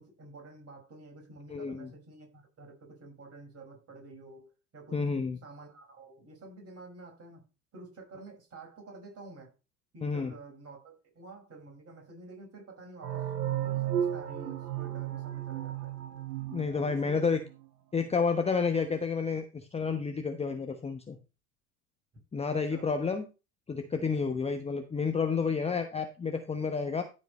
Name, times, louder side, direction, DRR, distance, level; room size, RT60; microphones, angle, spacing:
voice 1, 0.0-7.4 7.7-9.5 9.9-16.0 16.9-17.3 22.5-22.9, right 3 dB, 30° right, 5.8 m, -50 dB
voice 2, 1.5-1.9 4.9-5.4 10.0-10.3 16.5-17.4 17.9-21.2 22.3-23.3 23.7-27.0, left 5 dB, 15° left, 1.0 m, -30 dB
sound 1, 13.0-17.5, right 11 dB, 75° right, 1.6 m, -34 dB
13.5 x 5.2 x 4.3 m
figure-of-eight pair, 85°, 49 cm